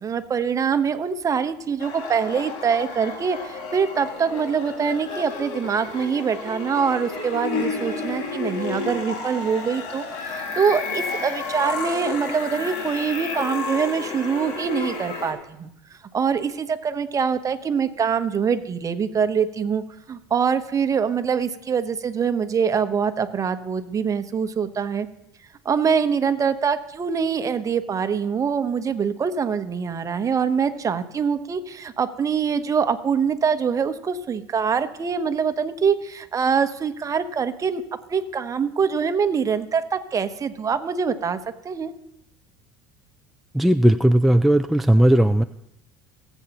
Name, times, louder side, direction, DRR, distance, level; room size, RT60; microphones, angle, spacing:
voice 1, 0.0-25.1 25.6-37.8 38.1-41.4 41.6-41.9, right 6 dB, 30° right, 9 dB, 1.0 m, -24 dB
sound 1, 1.8-15.3, left 4 dB, 65° left, 2.2 m, -31 dB
voice 2, 43.5-45.4, right 1 dB, ahead, 8 dB, 0.4 m, -17 dB
19.0 x 8.1 x 3.0 m, 0.83 s
hypercardioid pair, 85°, 11 cm